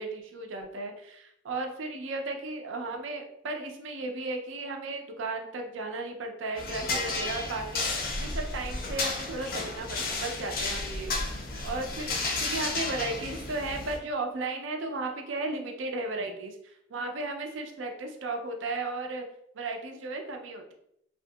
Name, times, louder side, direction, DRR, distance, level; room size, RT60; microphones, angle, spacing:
voice 1, 0.0-19.3 19.5-20.7, right 2 dB, 65° right, 4 dB, 0.5 m, -35 dB
sound 1, 6.6-14.0, left 3 dB, 45° left, 0.5 m, -32 dB
2.8 x 2.6 x 2.2 m, 0.76 s
head